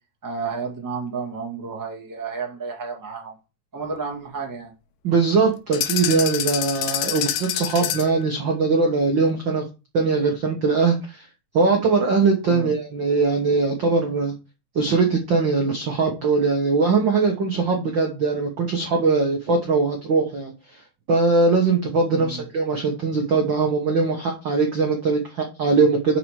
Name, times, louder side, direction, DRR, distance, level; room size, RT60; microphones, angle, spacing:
voice 1, 0.2-3.3 3.7-4.7 12.5-12.7 22.1-22.4, right 5 dB, 10° right, 1 dB, 0.9 m, -31 dB
voice 2, 5.0-9.6 9.9-11.3 11.5-14.3 14.7-20.8 21.1-26.2, right 4 dB, 65° right, 2 dB, 1.1 m, -21 dB
sound 1, 5.7-8.2, left 11 dB, 75° left, 2.4 m, -26 dB
6.3 x 5.8 x 6.5 m, 0.31 s
omnidirectional pair, 4.0 m